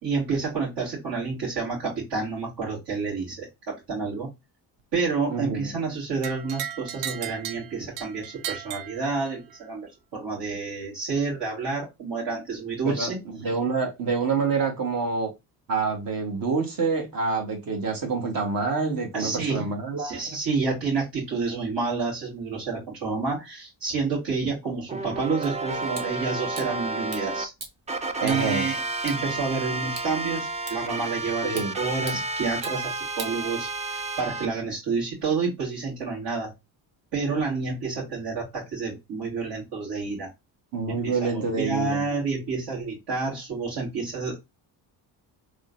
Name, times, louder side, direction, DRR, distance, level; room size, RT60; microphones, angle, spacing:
voice 1, 0.0-4.3 4.9-13.2 19.1-27.5 28.2-36.5 37.1-40.3 40.9-44.4, right 4 dB, 70° right, 2.6 m, -29 dB
voice 2, 5.3-5.7 12.8-15.3 15.7-20.2 28.2-28.7 31.4-31.7 40.7-42.0, right 4 dB, 55° right, 1.3 m, -27 dB
sound 1, 6.2-9.6, right 10 dB, 90° right, 0.6 m, -36 dB
sound 2, 24.9-27.5 27.9-34.5, right 2 dB, 15° right, 0.4 m, -31 dB
sound 3, 25.4-34.0, right 3 dB, 35° right, 1.5 m, -45 dB
3.7 x 3.2 x 2.5 m
cardioid pair, 115°, 41 cm